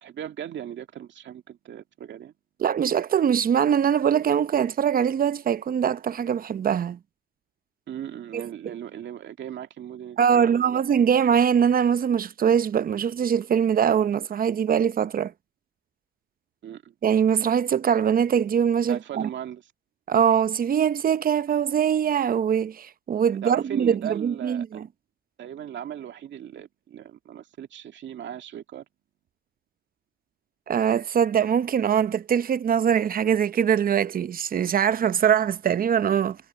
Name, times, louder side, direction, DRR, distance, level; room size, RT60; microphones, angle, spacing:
voice 1, 0.0-2.3 7.9-10.8 16.6-16.9 18.9-19.6 23.4-24.8 25.4-28.8, right 10 dB, 65° right, 2.4 m, -37 dB
voice 2, 2.6-7.0 8.3-8.7 10.2-15.3 17.0-19.3 20.1-24.9 30.7-36.4, right 8 dB, 45° right, 0.8 m, -22 dB
cardioid pair, 90°, 20 cm